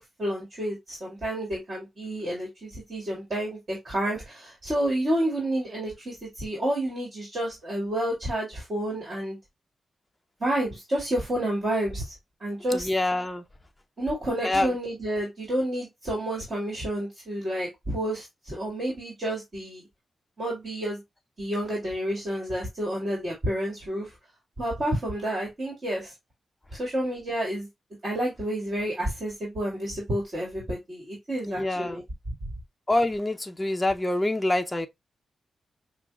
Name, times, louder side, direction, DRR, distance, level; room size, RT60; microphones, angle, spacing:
voice 1, 0.0-9.4 10.4-12.1 12.4-12.9 14.0-19.9 20.4-21.0 21.4-24.1 24.6-26.1 26.7-27.7 28.0-32.3, right 1 dB, 50° right, 1.9 m, -30 dB
voice 2, 12.7-13.4 14.4-14.7 31.5-32.0 32.9-34.9, left 1 dB, 15° left, 0.4 m, -26 dB
5.8 x 2.2 x 2.2 m
cardioid pair, 80°, 0 cm